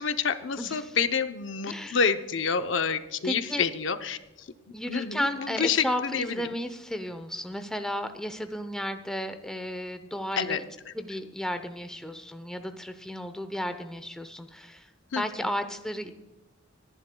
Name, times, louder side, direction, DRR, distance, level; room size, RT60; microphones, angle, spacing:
voice 1, 0.0-4.2 4.9-6.3 10.4-10.6 15.1-15.5, left 6 dB, 70° left, 9 dB, 0.7 m, -28 dB
voice 2, 0.6-1.0 1.7-2.0 3.2-3.7 4.7-10.6 10.9-14.9 15.1-16.1, equal, 5° left, 8 dB, 0.7 m, -33 dB
25.0 x 11.0 x 2.2 m, 1.0 s
head